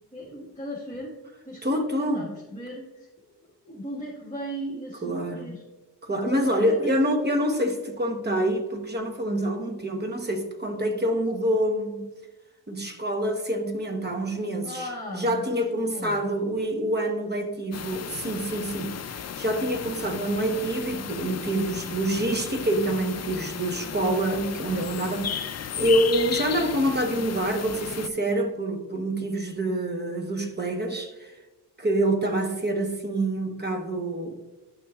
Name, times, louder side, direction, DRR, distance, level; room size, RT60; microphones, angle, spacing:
voice 1, 0.1-1.1 1.4-3.1 3.6-5.6 6.1-6.9 14.6-15.5 15.8-16.2, equal, 15° left, -7 dB, 1.6 m, -37 dB
voice 2, 1.6-2.3 5.0-5.5 6.0-12.1 12.7-31.3 31.8-34.3, right 1 dB, 25° right, 5 dB, 1.0 m, -26 dB
sound 1, 17.7-28.1, left 8 dB, 40° left, 0.4 m, -35 dB
11.0 x 6.0 x 2.4 m, 1.1 s
wide cardioid pair, 105°, 42 cm